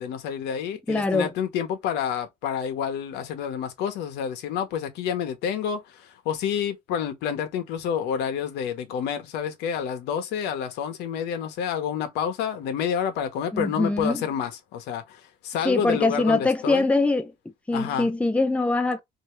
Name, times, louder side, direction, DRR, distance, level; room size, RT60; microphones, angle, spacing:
voice 1, 0.0-16.9 17.7-18.1, left 8 dB, 85° left, 0.9 m, -29 dB
voice 2, 0.9-1.3 13.5-14.2 15.6-17.3 17.7-19.0, left 2 dB, 5° left, 0.6 m, -23 dB
2.8 x 2.7 x 3.1 m
cardioid pair, 110°, 17 cm